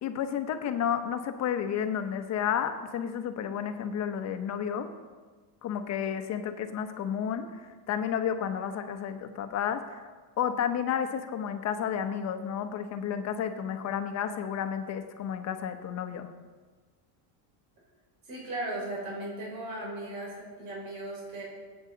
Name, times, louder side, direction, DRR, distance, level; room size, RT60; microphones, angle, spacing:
voice 1, 0.0-4.9 5.6-10.0 10.4-16.3, left 8 dB, 35° left, 7 dB, 0.9 m, -31 dB
voice 2, 18.2-21.4, right 1 dB, 60° right, -4 dB, 4.7 m, -37 dB
20.5 x 9.0 x 3.9 m, 1.4 s
cardioid pair, 165°, 45 cm